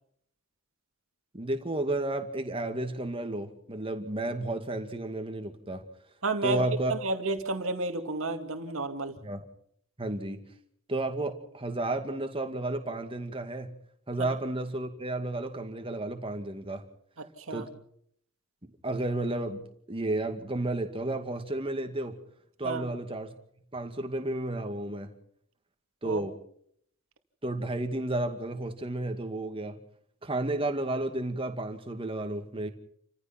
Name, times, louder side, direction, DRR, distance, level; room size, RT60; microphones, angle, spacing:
voice 1, 1.3-5.9 6.4-6.9 9.2-9.4 10.0-10.4 10.9-13.7 14.1-16.8 17.5-17.7 18.6-22.2 22.6-23.3 23.7-25.1 26.0-26.4 27.4-29.8 30.2-32.7, right 2 dB, 25° right, 6 dB, 2.3 m, -32 dB
voice 2, 6.2-9.1 14.2-14.3 17.5-17.6 22.6-22.9 26.0-26.2, right 3 dB, 65° right, 6 dB, 2.4 m, -31 dB
29.5 x 15.0 x 5.9 m, 0.66 s
head